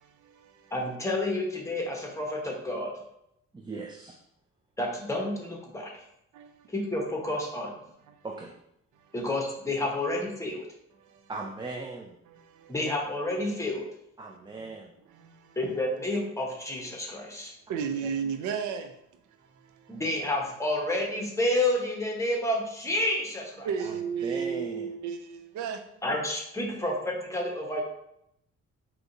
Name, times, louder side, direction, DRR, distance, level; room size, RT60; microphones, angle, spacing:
voice 1, 0.0-0.7 6.3-6.5 11.1-11.2 12.5-12.7 15.2-15.6 17.7-18.9 19.6-19.9 23.6-25.8, right 7 dB, 75° right, 0.5 m, -33 dB
voice 2, 0.7-2.9 4.8-5.9 6.7-7.7 9.1-10.7 12.7-13.9 15.6-17.5 19.9-23.7 26.0-27.8, left 1 dB, 10° left, 1.1 m, -30 dB
voice 3, 3.5-4.2 8.2-8.6 11.3-12.2 14.2-14.9 18.0-18.1 23.8-24.9, right 3 dB, 15° right, 0.4 m, -39 dB
4.8 x 2.9 x 2.7 m
cardioid pair, 90°, 30 cm